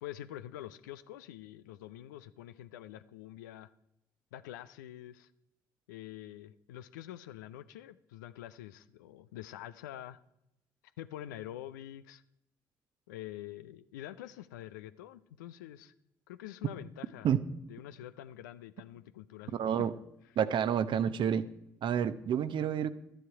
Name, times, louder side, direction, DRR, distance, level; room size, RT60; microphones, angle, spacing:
voice 1, 0.0-3.7 4.3-5.3 5.9-10.2 11.0-12.2 13.1-15.9 16.3-17.3 17.7-19.9, left 13 dB, 75° left, 13 dB, 0.5 m, -46 dB
voice 2, 19.5-19.9 20.4-21.5 21.8-22.9, right 8 dB, 55° right, 13 dB, 0.8 m, -29 dB
12.5 x 10.0 x 4.7 m, 0.83 s
figure-of-eight pair, 45°, 10 cm